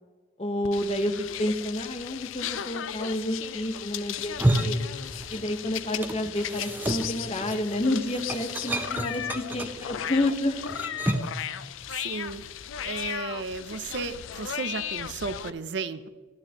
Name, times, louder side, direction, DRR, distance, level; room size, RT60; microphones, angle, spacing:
voice 1, 0.4-4.8 5.3-10.7, left 1 dB, 30° left, 5 dB, 0.9 m, -29 dB
sound 1, 0.6-15.5, left 10 dB, 75° left, 0.4 m, -36 dB
sound 2, 4.2-5.6 5.8-11.4, right 1 dB, 10° right, 0.6 m, -30 dB
voice 2, 12.0-12.4 12.8-16.1, right 4 dB, 60° right, 13 dB, 0.5 m, -34 dB
12.5 x 11.5 x 2.9 m, 1.4 s
head